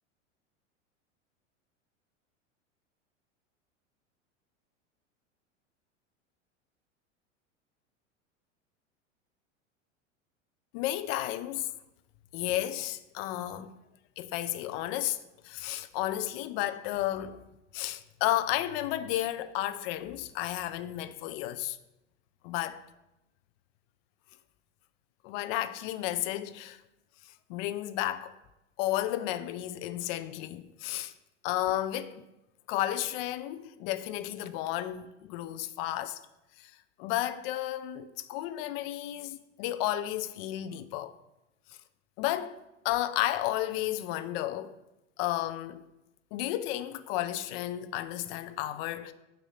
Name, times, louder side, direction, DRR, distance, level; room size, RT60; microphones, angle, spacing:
voice 1, 10.7-11.7 12.3-13.7 14.2-15.2 15.4-17.4 17.7-21.8 22.4-22.8 25.2-26.8 27.5-28.3 28.8-31.1 31.4-32.2 32.7-36.2 36.6-36.7 37.0-41.1 42.2-42.6 42.8-44.8 45.2-45.9 46.3-49.1, left 14 dB, 50° left, 0.5 m, -32 dB
7.1 x 2.7 x 5.7 m
hypercardioid pair, 95°, 37 cm